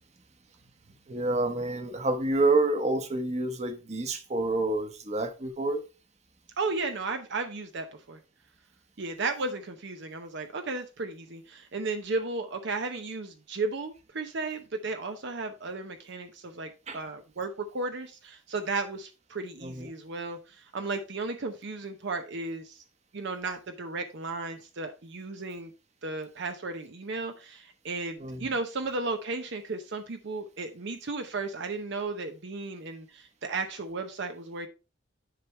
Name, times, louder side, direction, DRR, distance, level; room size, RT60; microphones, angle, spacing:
voice 1, 1.1-5.8 16.9-17.0 19.6-19.9 28.2-28.5, right 2 dB, 35° right, 1.1 m, -28 dB
voice 2, 6.6-8.2 9.0-22.8 23.1-25.7 26.0-34.7, right 3 dB, 65° right, 0.8 m, -34 dB
10.0 x 3.5 x 4.3 m
head